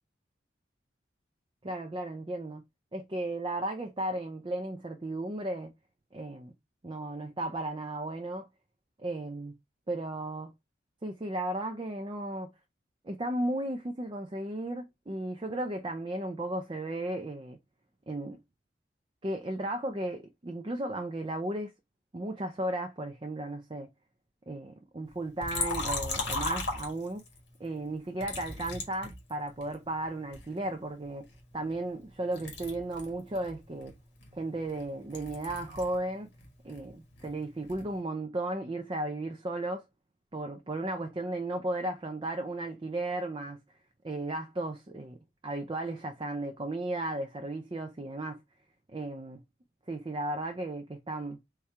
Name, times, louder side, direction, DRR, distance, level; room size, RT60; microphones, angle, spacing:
voice 1, 1.6-2.6 2.9-5.7 6.1-6.5 6.8-8.5 9.0-9.5 9.9-10.5 11.0-12.5 13.0-17.6 18.1-18.4 19.2-21.7 22.1-23.9 24.5-27.2 27.6-31.3 31.5-33.9 34.3-36.3 36.6-39.8 40.3-43.6 44.0-45.2 45.4-48.4 48.9-49.4 49.9-51.4, right 1 dB, 25° right, 0.4 m, -35 dB
Liquid, 25.4-27.4 28.2-29.7 30.3-32.1 32.3-36.0 36.3-37.9, left 3 dB, 70° left, 1.7 m, -37 dB
4.2 x 2.3 x 4.7 m
head